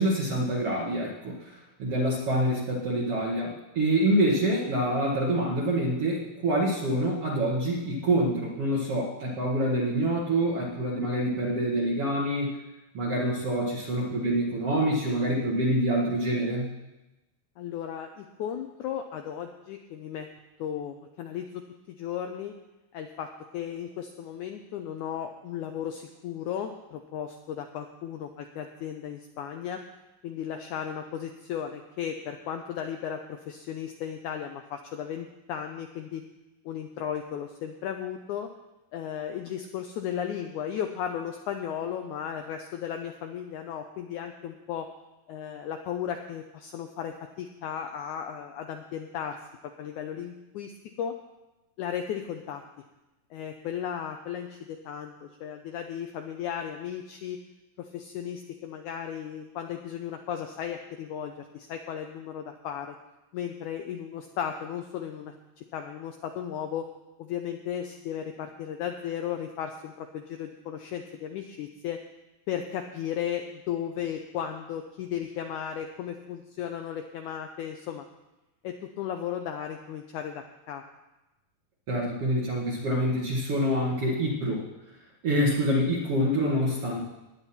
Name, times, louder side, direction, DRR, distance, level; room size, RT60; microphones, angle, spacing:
voice 1, 0.0-12.6 12.9-16.7 81.9-84.6 85.2-87.0, right 1 dB, 50° right, -4 dB, 2.2 m, -26 dB
voice 2, 17.6-20.3 20.6-22.5 22.9-23.3 23.5-29.8 30.2-36.2 36.7-38.5 38.9-44.9 45.3-49.4 49.8-50.7 51.0-51.1 51.8-52.6 53.3-57.4 57.8-63.0 63.3-66.9 67.2-72.0 72.5-78.1 78.6-80.8, left 9 dB, 75° left, 5 dB, 1.9 m, -35 dB
17.5 x 10.0 x 4.3 m, 1.0 s
omnidirectional pair, 4.2 m